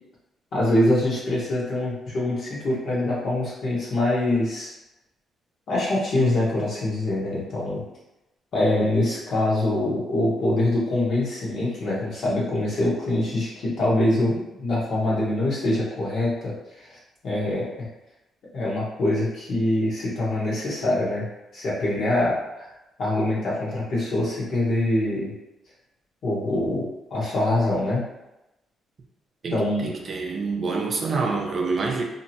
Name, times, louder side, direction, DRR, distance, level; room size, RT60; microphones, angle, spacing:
voice 1, 0.5-4.7 5.7-7.8 8.5-17.0 17.2-17.7 18.5-21.3 21.5-22.7 23.0-25.3 26.2-28.0 29.5-29.9, left 1 dB, 60° left, -6 dB, 1.0 m, -24 dB
voice 2, 29.4-32.0, right 4 dB, 45° right, 1 dB, 0.4 m, -27 dB
2.7 x 2.1 x 2.8 m, 0.94 s
cardioid pair, 90°, 0 cm